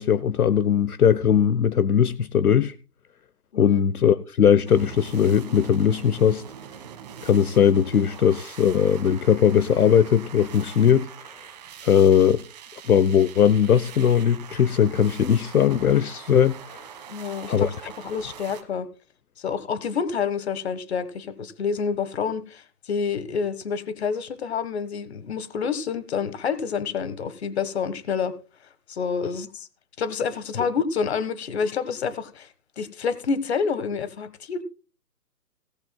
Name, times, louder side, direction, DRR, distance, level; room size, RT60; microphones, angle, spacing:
voice 1, 0.0-2.7 3.5-6.4 7.2-11.1 11.8-12.4 12.9-16.8 17.5-17.7, left 8 dB, 65° left, 0.9 m, -19 dB
sound 1, 4.7-18.6, right 8 dB, 25° right, 1.4 m, -43 dB
voice 2, 17.1-18.9 19.4-28.3 28.9-29.7 30.0-32.5 32.8-34.6, left 6 dB, 40° left, 1.4 m, -28 dB
18.0 x 13.5 x 2.2 m
hypercardioid pair, 155°, 47 cm